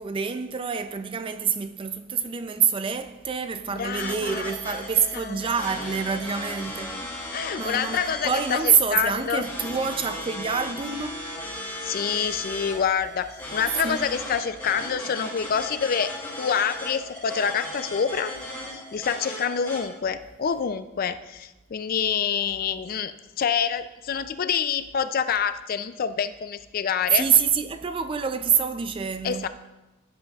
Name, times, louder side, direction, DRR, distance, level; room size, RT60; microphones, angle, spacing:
voice 1, 0.0-6.9 7.6-11.1 13.8-14.0 27.1-29.5, right 6 dB, 25° right, 0.4 m, -26 dB
voice 2, 3.7-4.5 5.1-5.4 7.3-9.4 11.8-18.3 18.7-27.3 29.2-29.5, left 7 dB, 45° left, 0.4 m, -27 dB
sound 1, 4.0-19.8, left 1 dB, 10° left, 2.5 m, -37 dB
15.5 x 8.0 x 2.4 m
head